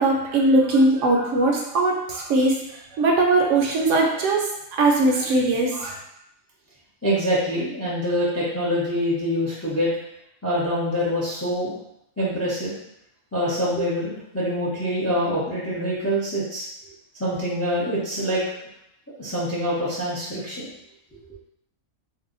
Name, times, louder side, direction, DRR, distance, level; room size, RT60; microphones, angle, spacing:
voice 1, 0.0-4.5 4.7-5.9, right 2 dB, 70° right, 0 dB, 0.8 m, -20 dB
voice 2, 7.0-9.9 10.4-11.7 12.2-12.8 13.3-16.7 17.2-18.4 19.2-20.6, equal, 20° left, -7 dB, 0.4 m, -25 dB
2.6 x 2.1 x 3.7 m, 0.80 s
omnidirectional pair, 1.4 m